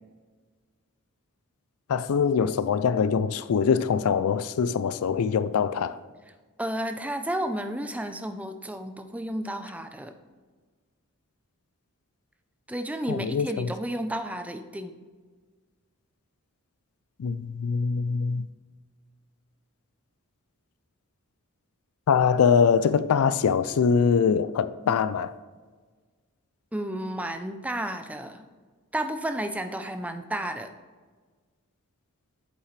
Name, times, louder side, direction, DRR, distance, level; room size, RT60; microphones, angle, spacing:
voice 1, 1.9-6.0 13.1-13.7 17.2-18.5 22.1-25.3, left 6 dB, 75° left, 0.4 m, -23 dB
voice 2, 6.6-10.1 12.7-14.9 26.7-28.5 28.9-30.7, right 1 dB, 5° right, 0.5 m, -32 dB
8.7 x 7.2 x 3.2 m
head